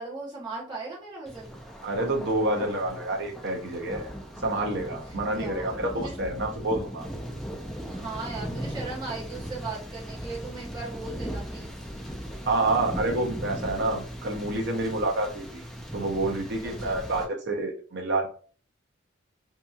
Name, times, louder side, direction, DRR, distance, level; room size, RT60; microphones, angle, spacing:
voice 1, 0.0-1.6 5.1-6.2 7.9-11.7 16.6-17.0, right 3 dB, 20° right, -6 dB, 0.9 m, -38 dB
Thunder, 1.3-17.3, equal, ahead, 0.3 m, -38 dB
voice 2, 1.8-4.1 4.4-7.1 12.4-15.6 15.9-18.3, right 2 dB, 55° right, 2 dB, 0.7 m, -28 dB
2.7 x 2.6 x 2.4 m, 0.41 s
head